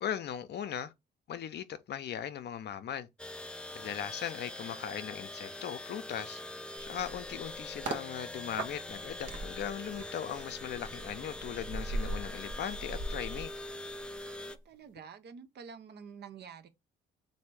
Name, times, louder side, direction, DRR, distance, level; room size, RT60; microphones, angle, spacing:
voice 1, 0.0-0.9 1.3-3.1 3.7-6.4 6.8-13.5, left 9 dB, 60° left, 0.6 m, -38 dB
sound 1, 3.2-14.6, left 1 dB, 5° left, 0.4 m, -44 dB
sound 2, 6.8-8.1 8.6-14.2 14.5-14.7, right 2 dB, 75° right, 1.0 m, -40 dB
voice 2, 14.4-16.7, right 6 dB, 55° right, 0.7 m, -48 dB
3.3 x 2.7 x 4.6 m
cardioid pair, 90°, 20 cm